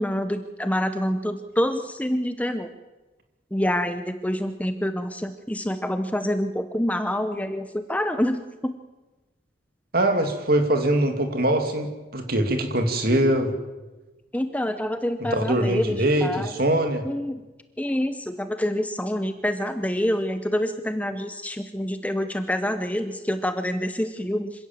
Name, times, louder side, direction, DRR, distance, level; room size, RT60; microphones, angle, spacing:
voice 1, 0.0-2.7 3.5-8.7 14.3-16.5 17.1-17.4 17.8-24.5, equal, 10° left, 9 dB, 0.8 m, -27 dB
voice 2, 9.9-13.5 15.2-17.0, right 1 dB, 50° right, 5 dB, 2.7 m, -22 dB
26.5 x 16.5 x 7.5 m, 1.1 s
head